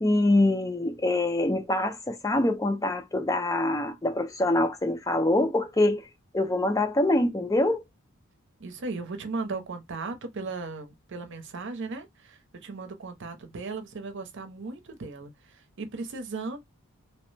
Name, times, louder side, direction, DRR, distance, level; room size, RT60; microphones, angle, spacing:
voice 1, 0.0-6.1 6.3-7.8, left 1 dB, 15° left, 0.4 m, -24 dB
voice 2, 8.6-16.6, right 3 dB, 55° right, 0.7 m, -37 dB
2.9 x 2.1 x 3.2 m
head